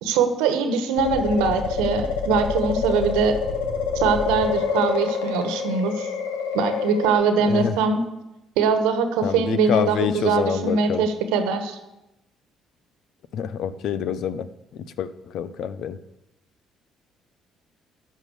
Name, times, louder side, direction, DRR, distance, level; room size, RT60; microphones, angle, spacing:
voice 1, 0.0-3.4 3.9-6.1 6.5-8.0 8.6-11.8, right 5 dB, 75° right, 8 dB, 1.3 m, -22 dB
sound 1, 1.0-7.1, left 5 dB, 80° left, 1.2 m, -26 dB
voice 2, 7.4-7.7 9.2-11.1 13.3-16.0, left 8 dB, 60° left, 14 dB, 0.7 m, -27 dB
12.5 x 5.5 x 8.2 m, 0.93 s
hypercardioid pair, 50°, 0 cm